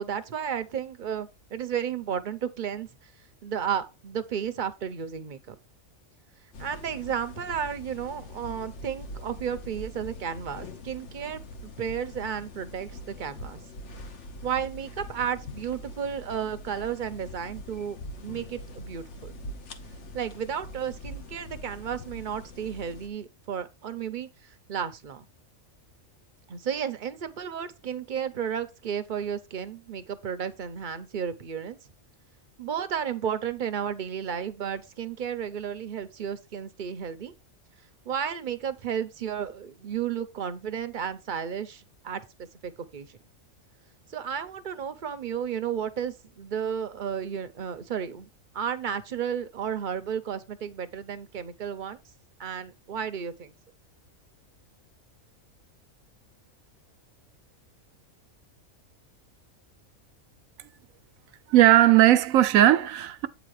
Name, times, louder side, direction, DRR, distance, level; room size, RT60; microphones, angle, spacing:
voice 1, 0.0-2.9 3.4-5.6 6.6-13.6 14.4-18.0 18.2-19.4 20.1-25.2 26.5-31.8 32.6-37.3 38.1-42.2 42.6-43.1 44.1-48.3 48.5-52.0 52.4-53.5, right 8 dB, 45° right, 0.7 m, -33 dB
sound 1, 6.5-23.1, left 1 dB, 60° left, 1.2 m, -43 dB
voice 2, 61.5-63.3, right 13 dB, 80° right, 1.0 m, -18 dB
8.4 x 4.0 x 4.8 m
omnidirectional pair, 1.4 m